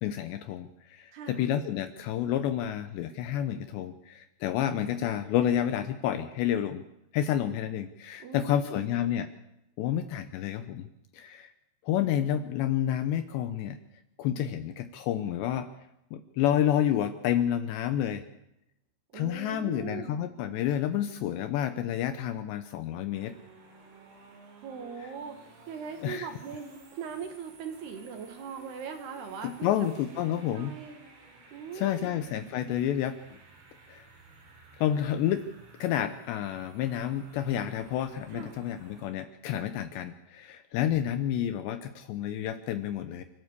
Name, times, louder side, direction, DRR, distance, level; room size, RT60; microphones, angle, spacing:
voice 1, 0.0-6.8 7.1-9.3 9.8-10.9 11.1-11.5 11.8-13.8 14.2-15.7 16.1-18.2 19.1-23.3 26.0-26.3 29.4-30.7 31.7-33.2 33.9-34.0 34.8-35.5 35.8-43.2, left 10 dB, 75° left, 10 dB, 2.7 m, -29 dB
voice 2, 1.1-1.5 8.2-9.0 19.1-20.2 24.5-29.7 30.2-31.0 31.5-32.3 38.3-38.7, right 6 dB, 60° right, 7 dB, 3.4 m, -41 dB
sound 1, 23.1-39.1, right 3 dB, 90° right, 7.4 m, -54 dB
29.0 x 13.0 x 8.2 m, 0.85 s
omnidirectional pair, 5.8 m